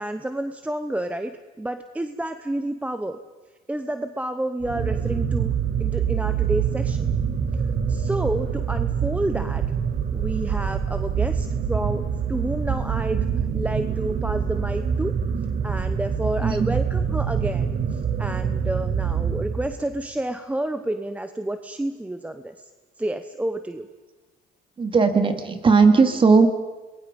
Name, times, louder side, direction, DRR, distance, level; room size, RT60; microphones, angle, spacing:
voice 1, 0.0-3.2 3.7-5.5 5.8-7.1 7.5-7.6 7.9-9.6 10.1-15.1 15.6-22.7 23.0-23.9, right 1 dB, 10° right, 9 dB, 0.9 m, -30 dB
sound 1, 4.6-19.9, right 7 dB, 55° right, 1.8 m, -25 dB
voice 2, 24.8-26.5, right 4 dB, 30° right, 7 dB, 2.4 m, -17 dB
27.0 x 21.0 x 5.3 m, 1.2 s
cardioid pair, 110°, 17 cm